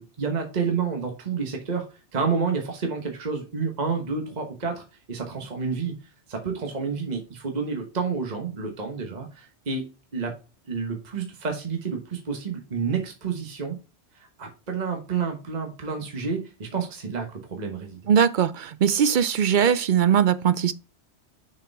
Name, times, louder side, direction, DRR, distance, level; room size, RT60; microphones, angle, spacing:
voice 1, 0.0-1.9 2.1-5.9 6.3-9.9 10.1-10.3 10.7-13.8 14.1-18.0, right 5 dB, 40° right, 1.2 m, -29 dB
voice 2, 18.1-20.7, right 8 dB, 55° right, 0.6 m, -20 dB
6.5 x 4.8 x 3.5 m
omnidirectional pair, 1.2 m